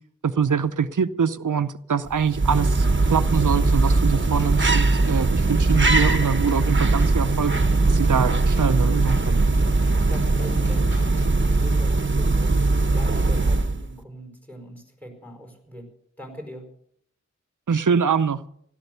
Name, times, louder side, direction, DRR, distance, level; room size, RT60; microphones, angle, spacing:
voice 1, 0.2-7.5 7.9-9.5 17.7-18.4, right 6 dB, 90° right, 11 dB, 0.7 m, -24 dB
sound 1, 2.1-13.9, right 3 dB, 40° right, 1.1 m, -20 dB
sound 2, 3.3-11.7, left 1 dB, 40° left, 6.7 m, -39 dB
voice 2, 9.9-11.2 11.4-12.6 12.9-15.9 16.2-16.7, equal, 5° left, 4 dB, 5.0 m, -41 dB
16.5 x 12.5 x 6.8 m, 0.69 s
wide cardioid pair, 50°, 30 cm